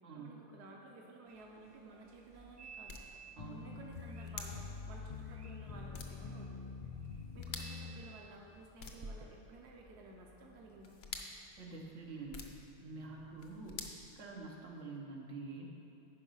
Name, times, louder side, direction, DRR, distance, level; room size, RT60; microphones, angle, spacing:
voice 1, 0.1-3.0 3.5-6.7 7.3-11.0, right 2 dB, 65° right, 0 dB, 1.1 m, -54 dB
sound 1, 1.3-9.3, right 3 dB, 50° right, 0.4 m, -56 dB
sound 2, 1.6-14.9, left 4 dB, 60° left, 0.9 m, -52 dB
sound 3, 3.4-7.9, left 5 dB, 75° left, 0.3 m, -46 dB
voice 2, 3.4-3.7 11.6-12.5 12.8-15.7, right 3 dB, 85° right, -1 dB, 1.4 m, -47 dB
10.0 x 4.9 x 5.5 m, 2.6 s
omnidirectional pair, 1.2 m